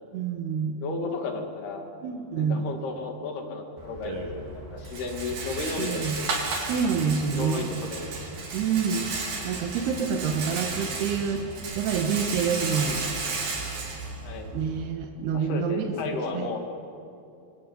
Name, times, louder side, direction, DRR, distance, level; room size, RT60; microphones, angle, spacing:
voice 1, 0.1-0.8 2.0-2.7 5.8-6.2 6.6-7.7 8.5-9.1 9.4-13.1 14.5-16.0 16.3-16.5, right 6 dB, 90° right, 4 dB, 3.6 m, -27 dB
voice 2, 0.8-1.9 2.3-4.3 4.5-6.3 7.3-8.1 14.2-14.5 15.3-16.6, left 4 dB, 80° left, 3 dB, 4.6 m, -33 dB
Rattle, 3.8-14.8, right 3 dB, 70° right, 5.6 m, -34 dB
25.5 x 25.0 x 9.3 m, 2.6 s
omnidirectional pair, 4.5 m